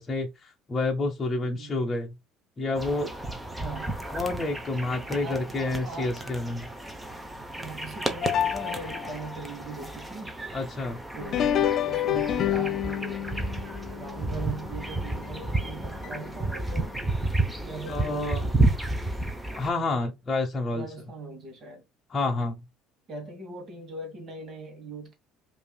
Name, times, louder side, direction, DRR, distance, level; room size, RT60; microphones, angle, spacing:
voice 1, 0.0-2.1 2.6-3.1 4.1-6.7 10.5-11.0 17.9-18.4 19.5-20.9 22.1-22.6, left 2 dB, 20° left, 0.9 m, -29 dB
voice 2, 1.5-1.9 3.6-4.0 5.1-6.2 7.5-10.4 11.1-13.3 13.9-16.9 17.6-18.7 20.7-21.9 22.3-22.5 23.1-25.1, right 3 dB, 40° right, 1.4 m, -40 dB
sound 1, 2.8-19.7, right 2 dB, 5° right, 0.8 m, -32 dB
sound 2, 8.2-9.4 11.2-15.6 16.0-16.1 17.0-17.1 17.9-18.0, left 10 dB, 45° left, 0.3 m, -29 dB
5.2 x 2.7 x 2.3 m
cardioid pair, 130°, 0 cm